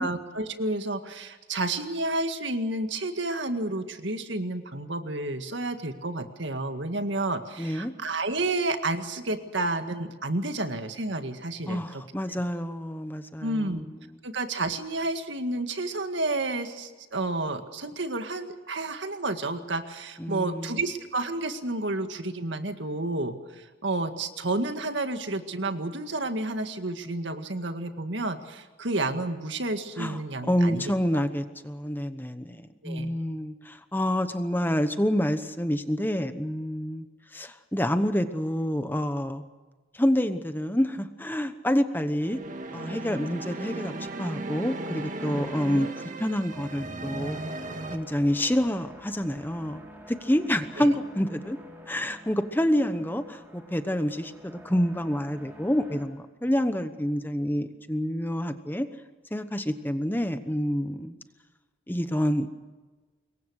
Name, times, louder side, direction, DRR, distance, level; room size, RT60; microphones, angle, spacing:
voice 1, 0.0-12.0 13.4-13.9 14.2-31.2 32.8-33.1 50.8-50.9, right 2 dB, 65° right, 7 dB, 1.9 m, -30 dB
voice 2, 7.6-7.9 11.7-13.9 20.2-20.8 30.0-30.2 30.5-37.1 37.3-39.4 39.9-42.4 42.7-45.9 46.2-47.4 47.9-49.8 50.1-51.6 51.9-58.9 59.3-61.1 61.9-62.5, equal, 10° left, 9 dB, 1.0 m, -28 dB
sound 1, 42.2-48.0, right 2 dB, 40° right, 2.0 m, -36 dB
sound 2, 47.2-56.1, left 1 dB, 10° right, 4.4 m, -48 dB
26.0 x 22.5 x 6.5 m, 1.3 s
head